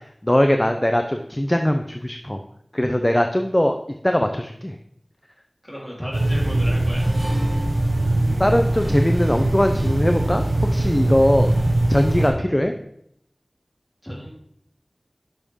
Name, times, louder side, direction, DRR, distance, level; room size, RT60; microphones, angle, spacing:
voice 1, 0.0-2.4 2.7-3.7 4.0-4.8 8.2-11.5 11.9-12.7, left 1 dB, 20° left, 5 dB, 0.6 m, -21 dB
voice 2, 5.6-7.1 14.0-14.3, equal, ahead, -4 dB, 3.7 m, -33 dB
sound 1, 6.1-12.3, right 1 dB, 75° right, 3.3 m, -21 dB
10.5 x 6.4 x 3.7 m, 0.71 s
wide cardioid pair, 50°, 0 cm